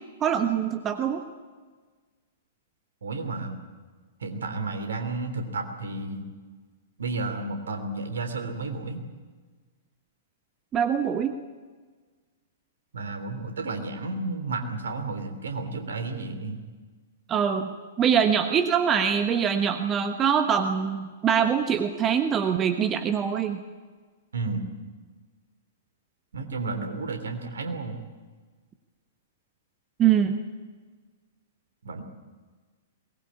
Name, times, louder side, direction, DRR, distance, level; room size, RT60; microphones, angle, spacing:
voice 1, 0.2-1.2 10.7-11.3 17.3-23.6 30.0-30.4, right 8 dB, 20° right, 8 dB, 1.3 m, -24 dB
voice 2, 3.0-3.6 4.2-6.3 7.0-9.0 12.9-16.6 24.3-24.6 26.3-28.0 31.8-32.0, right 3 dB, 65° right, 7 dB, 3.4 m, -32 dB
22.0 x 20.0 x 8.5 m, 1.4 s
figure-of-eight pair, 110°, 0 cm